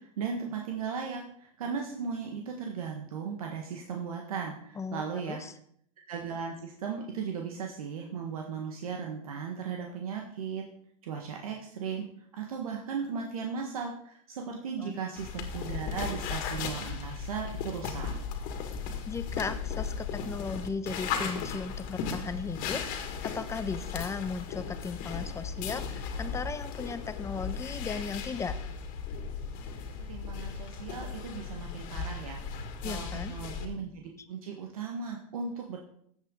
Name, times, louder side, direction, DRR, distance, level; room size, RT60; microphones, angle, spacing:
voice 1, 0.0-5.4 6.1-10.6 11.0-12.1 12.3-18.2 30.1-32.4 32.8-35.8, right 6 dB, 90° right, 2 dB, 1.6 m, -37 dB
voice 2, 4.8-5.5 14.8-15.0 19.0-28.6 32.8-33.4, left 5 dB, 15° left, 11 dB, 0.8 m, -37 dB
sound 1, 15.2-33.7, left 6 dB, 50° left, 2.0 m, -36 dB
14.0 x 8.0 x 3.9 m, 0.66 s
supercardioid pair, 120°, 18 cm